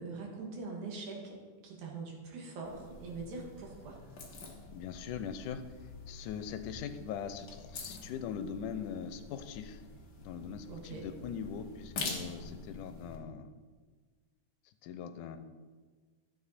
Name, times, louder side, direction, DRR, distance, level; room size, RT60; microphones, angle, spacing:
voice 1, 0.0-1.4 1.6-4.0 10.7-11.1, right 4 dB, 70° right, -1 dB, 3.0 m, -43 dB
sound 1, 2.6-13.2, left 3 dB, 50° left, 1.3 m, -46 dB
voice 2, 4.7-5.6 6.1-9.8 10.2-13.5 14.8-15.4, left 7 dB, 85° left, 10 dB, 2.1 m, -41 dB
12.5 x 7.5 x 4.2 m, 1.5 s
omnidirectional pair, 3.6 m